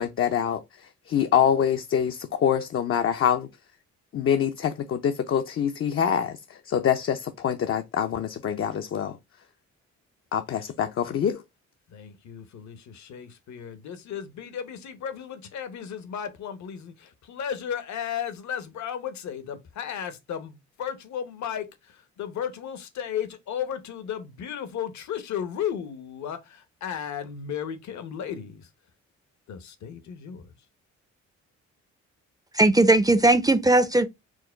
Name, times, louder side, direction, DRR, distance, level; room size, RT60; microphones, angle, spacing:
voice 1, 0.0-3.5 4.1-9.2 10.3-11.4, left 8 dB, 45° left, 0.6 m, -25 dB
voice 2, 11.9-28.7 29.5-30.5, left 8 dB, 70° left, 1.0 m, -34 dB
voice 3, 32.5-34.1, right 2 dB, 10° right, 0.5 m, -18 dB
4.6 x 2.2 x 4.4 m
cardioid pair, 90°, 30 cm